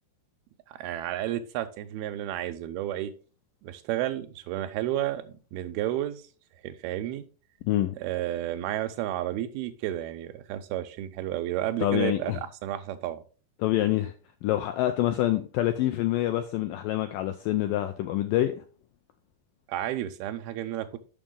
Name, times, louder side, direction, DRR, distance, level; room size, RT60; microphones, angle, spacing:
voice 1, 0.7-3.1 3.6-6.3 6.6-7.3 8.0-12.3 12.6-13.2 19.7-21.0, right 13 dB, 85° right, 2.5 m, -31 dB
voice 2, 11.8-12.4 13.6-14.1 14.4-18.6, left 14 dB, 90° left, 1.9 m, -26 dB
6.8 x 6.0 x 3.7 m
omnidirectional pair, 4.4 m